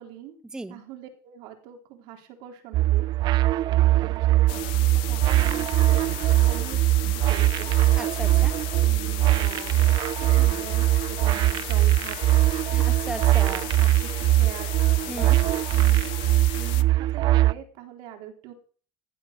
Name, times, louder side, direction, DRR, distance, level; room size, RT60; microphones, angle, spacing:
voice 1, 0.0-0.4 0.7-3.1 3.8-6.0 6.4-7.7 8.8-12.2 13.5-14.7 15.1-16.1 16.5-18.5, right 11 dB, 75° right, 4 dB, 3.8 m, -43 dB
sound 1, 2.7-17.5, right 16 dB, 55° right, 0.6 m, -21 dB
sound 2, 4.5-16.8, left 20 dB, 75° left, 0.8 m, -37 dB
voice 2, 8.0-8.6 12.7-13.7 15.1-15.4, right 2 dB, 10° right, 14 dB, 0.7 m, -36 dB
15.5 x 8.5 x 6.7 m, 0.42 s
supercardioid pair, 115°, 9 cm